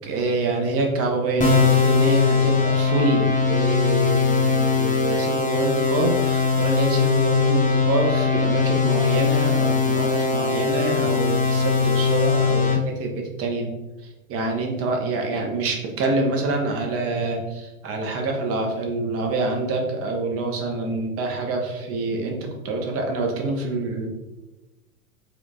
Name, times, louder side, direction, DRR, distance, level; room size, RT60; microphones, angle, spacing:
voice 1, 0.1-13.7 14.3-24.1, right 2 dB, 30° right, 2 dB, 0.9 m, -26 dB
sound 1, 1.4-12.7, left 5 dB, 15° left, 1.0 m, -20 dB
4.4 x 2.5 x 3.7 m, 1.1 s
figure-of-eight pair, 90°, 44 cm